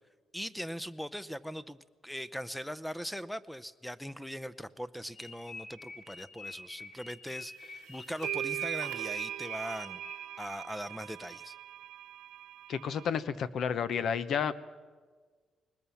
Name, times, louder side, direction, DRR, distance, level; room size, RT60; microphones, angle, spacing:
voice 1, 0.3-10.0 10.4-11.6, equal, 5° left, 15 dB, 0.6 m, -40 dB
sound 1, 5.2-10.5, left 3 dB, 45° left, 3.0 m, -47 dB
sound 2, 7.6-7.7 8.2-13.1, right 13 dB, 90° right, 0.5 m, -39 dB
voice 2, 12.7-14.5, left 7 dB, 65° left, 14 dB, 1.0 m, -31 dB
20.5 x 20.0 x 7.1 m, 1.5 s
cardioid pair, 90°, 0 cm